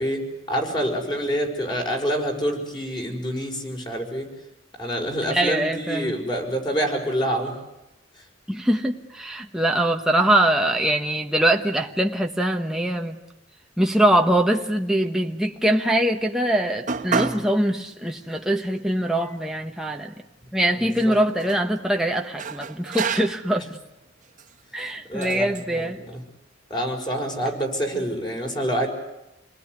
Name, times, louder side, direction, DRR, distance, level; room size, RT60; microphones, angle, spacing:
voice 1, 0.0-4.3 4.8-7.5 17.1-17.4 20.7-21.2 25.1-25.5 25.7-26.2 26.7-28.9, equal, 25° left, 2 dB, 6.1 m, -27 dB
voice 2, 5.3-6.1 8.5-13.2 13.8-20.1 20.5-23.8 24.7-26.0, right 1 dB, 5° right, 2 dB, 1.2 m, -23 dB
sound 1, 16.9-17.5 17.9-18.0 18.8-18.9 19.2-20.1 21.0-21.7 22.4-23.5 24.3-24.5 25.2-25.6, right 5 dB, 40° right, 1.6 m, -30 dB
28.5 x 20.0 x 9.7 m, 0.91 s
head